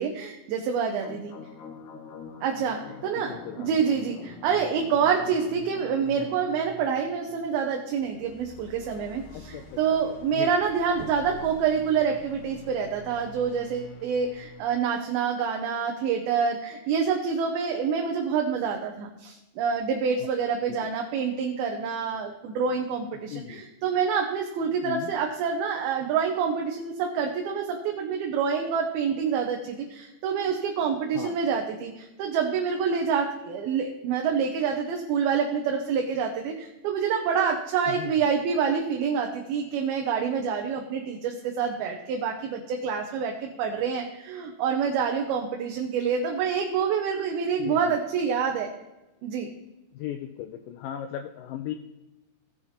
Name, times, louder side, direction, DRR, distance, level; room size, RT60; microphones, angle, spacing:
voice 1, 0.0-1.3 2.4-48.7 49.2-49.5, right 6 dB, 85° right, 2 dB, 2.8 m, -27 dB
sound 1, 1.0-14.7, left 3 dB, 65° left, 2.3 m, -45 dB
voice 2, 3.2-3.8 9.3-9.6 10.3-10.5 20.7-20.8 23.3-23.6 24.8-25.1 31.1-31.4 37.9-38.1 47.6-48.0 49.9-51.8, left 11 dB, 80° left, 6 dB, 2.0 m, -36 dB
16.5 x 5.8 x 4.2 m, 0.98 s
omnidirectional pair, 4.3 m